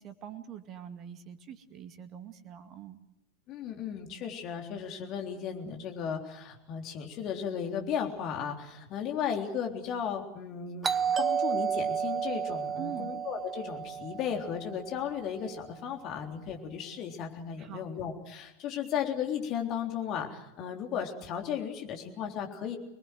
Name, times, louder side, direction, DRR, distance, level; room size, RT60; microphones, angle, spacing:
voice 1, 0.0-3.0 12.8-13.1 17.6-17.9, right 10 dB, 30° right, 10 dB, 2.1 m, -44 dB
voice 2, 3.5-10.9 11.2-22.8, left 8 dB, 35° left, 3 dB, 3.6 m, -35 dB
Doorbell, 10.8-15.4, right 7 dB, 15° right, 0.9 m, -32 dB
26.5 x 20.5 x 7.8 m, 0.91 s
figure-of-eight pair, 90°, 0 cm